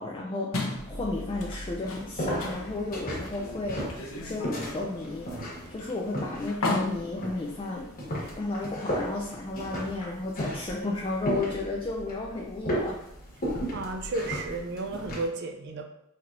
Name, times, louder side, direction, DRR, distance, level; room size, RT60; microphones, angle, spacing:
voice 1, 0.0-7.9 8.4-13.0, left 2 dB, 25° left, -1 dB, 0.3 m, -33 dB
sound 1, 0.5-8.3, left 2 dB, 70° left, 0.7 m, -36 dB
sound 2, 0.7-15.3, equal, 40° left, 1.2 m, -36 dB
voice 2, 13.7-15.8, right 2 dB, 50° right, 5 dB, 0.4 m, -33 dB
4.3 x 3.1 x 2.5 m, 0.83 s
head